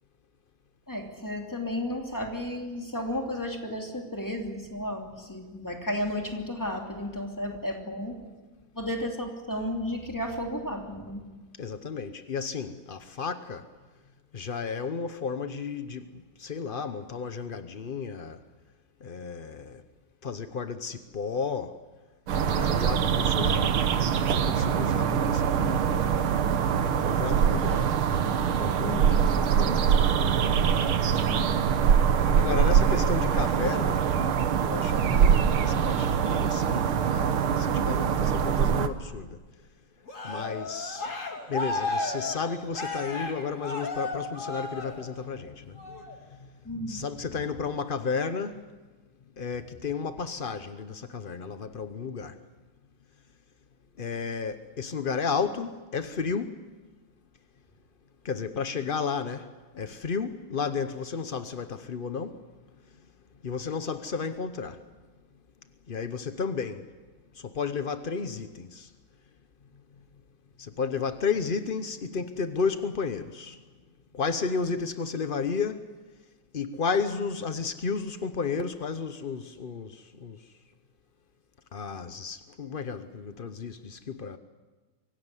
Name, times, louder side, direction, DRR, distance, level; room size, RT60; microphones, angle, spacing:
voice 1, 0.9-8.3 8.7-11.2 28.8-29.2 31.3-31.6 46.6-47.1, left 1 dB, 10° left, 2 dB, 2.8 m, -33 dB
voice 2, 11.6-13.7 14.3-18.4 19.0-19.8 20.2-21.8 22.4-23.8 24.2-27.9 28.4-30.3 32.3-34.1 34.6-39.4 40.2-41.1 41.5-45.8 46.3-46.5 46.9-48.7 49.4-52.4 54.0-56.6 58.2-62.5 63.4-64.8 65.9-66.9 67.3-68.9 70.6-73.6 74.1-75.9 76.5-80.4 81.7-84.4, left 5 dB, 70° left, 10 dB, 0.5 m, -33 dB
sound 1, 22.3-38.9, right 7 dB, 85° right, 2.0 m, -23 dB
Cheering, 40.1-45.3 45.8-46.1, left 2 dB, 35° left, 2.5 m, -34 dB
24.5 x 16.5 x 9.8 m, 1.3 s
omnidirectional pair, 2.3 m